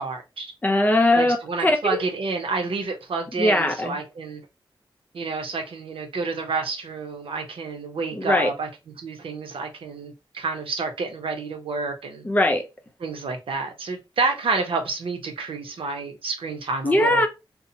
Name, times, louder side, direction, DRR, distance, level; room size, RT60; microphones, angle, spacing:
voice 1, 0.0-0.5 1.2-4.4 5.1-8.7 9.0-12.3 13.0-17.3, right 4 dB, 80° right, 0.6 m, -29 dB
voice 2, 0.6-1.4 1.6-2.0 3.4-3.9 8.1-8.5 12.2-12.6 16.8-17.3, left 1 dB, 20° left, 0.4 m, -20 dB
2.7 x 2.0 x 2.6 m
wide cardioid pair, 135°, 9 cm